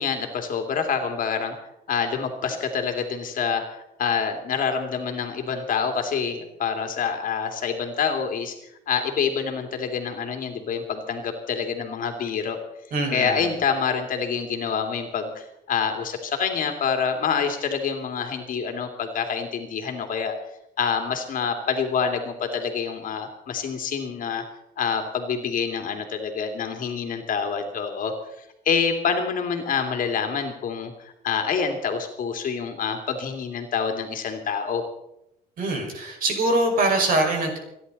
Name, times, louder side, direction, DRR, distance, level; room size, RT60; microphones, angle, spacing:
voice 1, 0.0-1.5 1.9-8.5 8.9-12.6 13.1-20.3 20.8-24.4 24.8-28.1 28.7-34.8, left 6 dB, 55° left, 5 dB, 2.5 m, -27 dB
voice 2, 12.9-13.5 35.6-37.6, right 2 dB, 55° right, 2 dB, 5.6 m, -23 dB
29.5 x 11.0 x 4.1 m, 0.82 s
cardioid pair, 110°, 17 cm